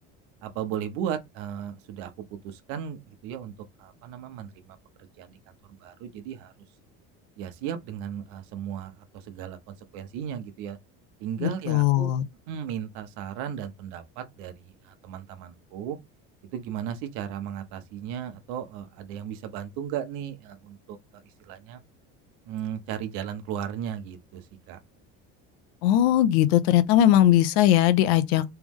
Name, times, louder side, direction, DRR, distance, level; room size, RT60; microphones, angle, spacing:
voice 1, 0.4-3.5 3.8-4.8 5.2-5.4 5.8-6.5 7.4-10.8 11.2-12.1 12.5-16.0 16.5-21.8 22.5-24.8, right 9 dB, 65° right, 1.0 m, -36 dB
voice 2, 11.4-12.2 25.8-28.4, left 12 dB, 90° left, 0.7 m, -20 dB
3.3 x 3.1 x 3.5 m
cardioid pair, 165°, 31 cm